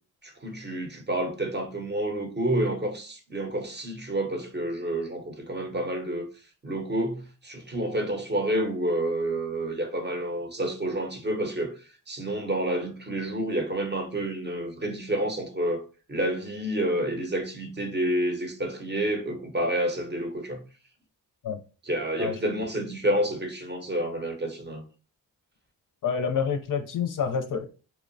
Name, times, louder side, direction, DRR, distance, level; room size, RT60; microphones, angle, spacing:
voice 1, 0.2-6.3 6.6-15.8 16.1-20.6 21.8-24.8, right 1 dB, 25° right, 0.6 m, -29 dB
voice 2, 26.0-27.7, left 6 dB, 55° left, 0.4 m, -28 dB
2.8 x 2.0 x 2.6 m
cardioid pair, 55°, 40 cm